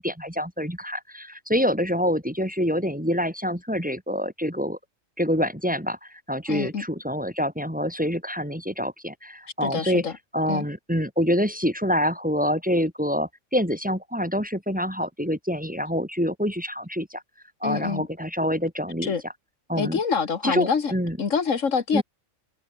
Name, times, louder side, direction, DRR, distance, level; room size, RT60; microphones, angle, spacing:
voice 1, 0.0-4.8 5.2-10.0 10.3-17.2 17.6-19.1 19.7-20.0 20.4-21.2 21.9-22.0, equal, 5° right, 2.8 m, -26 dB
voice 2, 6.5-6.8 9.6-10.1 10.5-10.7 17.6-18.1 19.0-19.2 19.8-20.9 21.2-22.0, left 5 dB, 75° left, 2.0 m, -26 dB
omnidirectional pair, 1.3 m